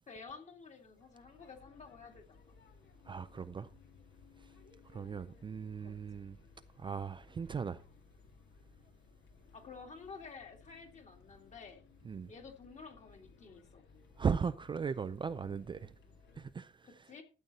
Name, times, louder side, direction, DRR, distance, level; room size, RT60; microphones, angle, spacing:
voice 1, 0.1-2.5 5.8-5.9 9.5-11.8 12.3-13.8 16.8-17.2, left 5 dB, 40° left, 2.3 m, -51 dB
sound 1, 0.8-16.5, left 5 dB, 65° left, 2.1 m, -61 dB
voice 2, 3.1-3.7 4.4-4.5 4.9-6.4 6.8-7.8 12.0-12.3 14.2-15.9 16.3-16.9, right 6 dB, 25° right, 0.4 m, -37 dB
12.5 x 8.1 x 4.1 m
cardioid pair, 170°, 19 cm